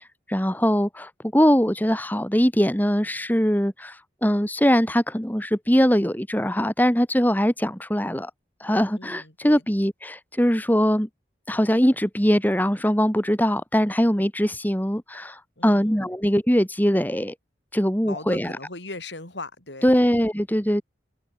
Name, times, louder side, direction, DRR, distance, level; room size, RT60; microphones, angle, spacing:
voice 1, 0.3-8.3 8.6-11.1 11.5-17.3 17.7-18.6 19.8-20.8, equal, 10° left, 3.7 m, -22 dB
voice 2, 9.0-9.6 15.6-16.0 18.0-20.0, left 2 dB, 80° left, 7.5 m, -38 dB
head